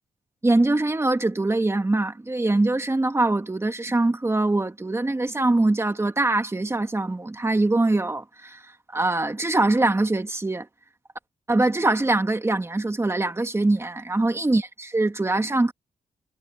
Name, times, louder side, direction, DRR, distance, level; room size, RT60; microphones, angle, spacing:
voice 1, 0.4-8.6 8.9-10.7 11.5-15.7, right 2 dB, 15° right, 2.2 m, -23 dB
wide cardioid pair, 140°, 16 cm